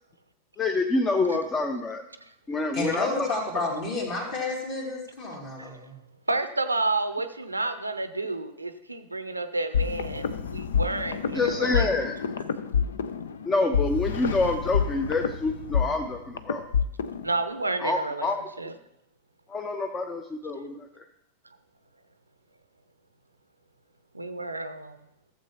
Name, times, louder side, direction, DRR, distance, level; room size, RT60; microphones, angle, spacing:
voice 1, 0.6-2.0 2.5-3.4 11.3-12.1 13.5-16.6 17.8-18.4 19.5-21.0, left 3 dB, 20° left, 5 dB, 0.7 m, -27 dB
voice 2, 2.7-6.0, left 3 dB, 45° left, -1 dB, 2.7 m, -31 dB
voice 3, 6.3-11.9 17.2-18.3 18.6-18.7 24.1-25.0, right 2 dB, 80° right, 10 dB, 0.6 m, -30 dB
sound 1, 9.7-17.3, left 6 dB, 65° left, 0.5 m, -28 dB
15.0 x 7.4 x 2.9 m, 0.78 s
figure-of-eight pair, 90°, 0 cm